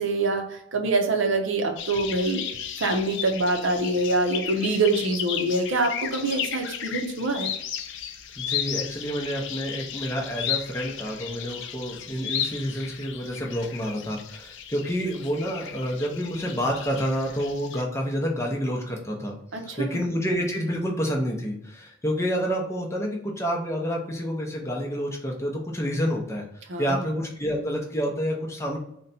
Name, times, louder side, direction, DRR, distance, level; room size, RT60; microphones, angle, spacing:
voice 1, 0.0-2.4 2.8-7.5 19.5-20.0 26.7-27.1, right 2 dB, 65° right, 4 dB, 0.6 m, -25 dB
sound 1, 1.8-17.8, left 9 dB, 60° left, 0.4 m, -34 dB
voice 2, 8.4-19.4 19.8-26.4 26.8-28.8, equal, 15° left, 0 dB, 0.6 m, -28 dB
3.9 x 2.2 x 4.0 m, 0.76 s
head